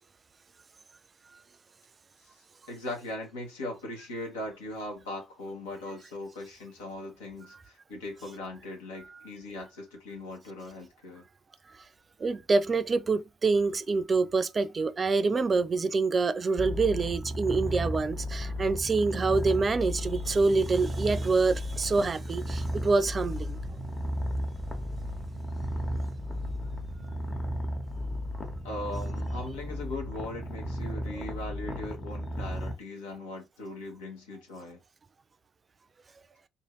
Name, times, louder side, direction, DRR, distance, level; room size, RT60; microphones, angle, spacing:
voice 1, 2.7-11.3 28.6-34.8, left 1 dB, 75° left, 0.8 m, -39 dB
voice 2, 12.2-23.6 31.1-31.2, right 3 dB, 35° right, 0.3 m, -26 dB
Purr, 16.6-32.7, equal, 30° left, 1.0 m, -34 dB
2.6 x 2.5 x 3.0 m
figure-of-eight pair, 50°, 0 cm